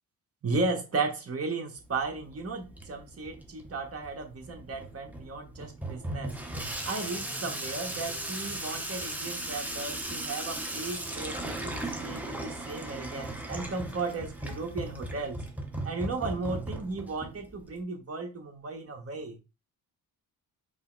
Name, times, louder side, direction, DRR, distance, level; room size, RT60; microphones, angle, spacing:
voice 1, 0.4-6.4 6.8-15.4 15.8-19.4, right 3 dB, 40° right, 2 dB, 1.4 m, -35 dB
Water tap faucet / Sink (filling or washing), 1.8-17.8, right 1 dB, 5° right, 1.0 m, -37 dB
5.4 x 2.1 x 4.0 m, 0.27 s
cardioid pair, 95°, 37 cm